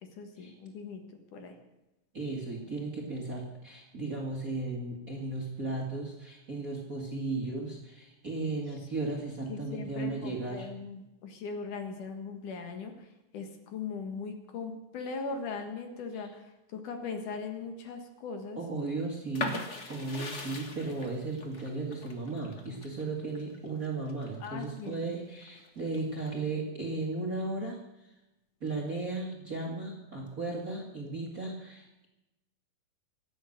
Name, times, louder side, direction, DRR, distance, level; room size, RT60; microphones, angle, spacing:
voice 1, 0.2-1.0 1.3-1.5 9.5-13.1 13.3-18.6 24.4-25.0, left 5 dB, 65° left, 5 dB, 2.9 m, -39 dB
voice 2, 2.1-10.7 16.1-16.2 18.6-19.6 19.9-27.8 28.6-32.1, right 3 dB, 30° right, -1 dB, 1.8 m, -35 dB
sound 1, 19.3-25.0 25.4-26.3, left 3 dB, 45° left, 0.8 m, -40 dB
24.5 x 8.5 x 6.5 m, 0.96 s
omnidirectional pair, 4.1 m